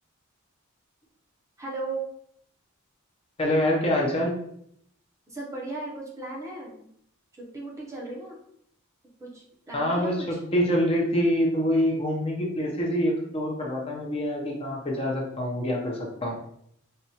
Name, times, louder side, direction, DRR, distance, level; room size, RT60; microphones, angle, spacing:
voice 1, 1.6-2.0 5.3-6.9 7.4-8.4 9.2-10.4, right 2 dB, 15° right, -3 dB, 0.6 m, -36 dB
voice 2, 3.4-4.3 9.7-16.4, equal, 25° left, -1 dB, 0.6 m, -25 dB
4.3 x 2.3 x 2.7 m, 0.70 s
head